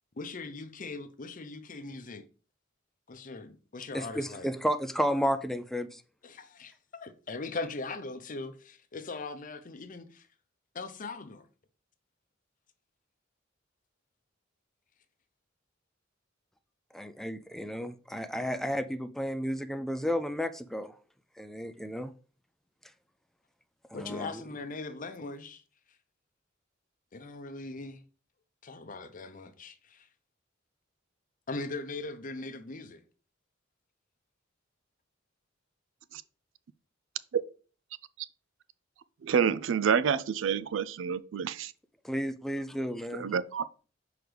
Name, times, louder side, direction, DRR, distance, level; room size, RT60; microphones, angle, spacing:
voice 1, 0.2-2.2 3.1-4.5 6.2-10.3 10.7-11.5 23.9-25.6 27.1-28.0 28.6-30.1 31.5-33.0, left 3 dB, 45° left, 0.7 m, -40 dB
voice 2, 3.9-6.0 16.9-20.9 21.4-22.1 23.9-24.4 42.0-43.3, equal, ahead, 0.4 m, -32 dB
voice 3, 39.2-41.7 43.2-43.6, right 7 dB, 70° right, 0.4 m, -28 dB
6.2 x 4.9 x 3.3 m
head